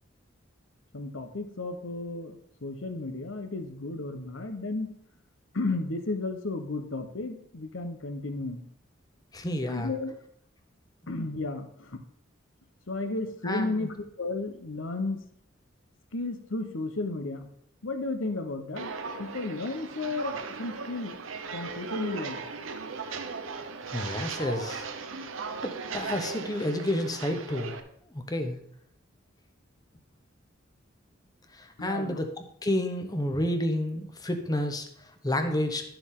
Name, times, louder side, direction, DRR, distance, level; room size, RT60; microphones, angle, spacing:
voice 1, 0.9-4.9 5.5-8.7 9.7-10.1 11.1-12.0 12.9-15.2 16.1-17.5 17.8-18.9 19.2-21.2 21.5-22.4 31.8-32.2, left 2 dB, 75° left, 7 dB, 1.0 m, -33 dB
voice 2, 9.3-9.9 13.4-13.9 23.9-24.8 25.6-27.8 28.1-28.6 31.5-35.8, left 1 dB, 20° left, 6 dB, 0.9 m, -30 dB
Walk footsteps, 18.7-27.8, right 4 dB, 80° right, 0.8 m, -37 dB
11.5 x 6.9 x 3.8 m, 0.69 s
head